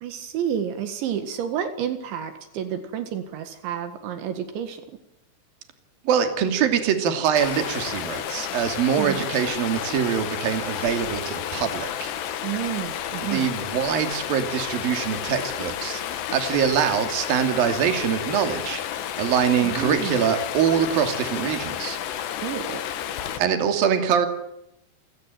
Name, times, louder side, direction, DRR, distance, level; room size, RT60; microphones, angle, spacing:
voice 1, 0.0-4.9 9.0-9.3 12.4-13.5 19.6-20.2 22.4-22.8, right 9 dB, 80° right, 9 dB, 4.1 m, -30 dB
voice 2, 6.0-12.1 13.2-18.8 19.2-22.0 23.4-24.3, right 8 dB, 55° right, 7 dB, 4.2 m, -24 dB
Stream, 7.3-23.4, left 10 dB, 70° left, 3.7 m, -31 dB
29.0 x 18.0 x 9.2 m, 0.82 s
omnidirectional pair, 5.3 m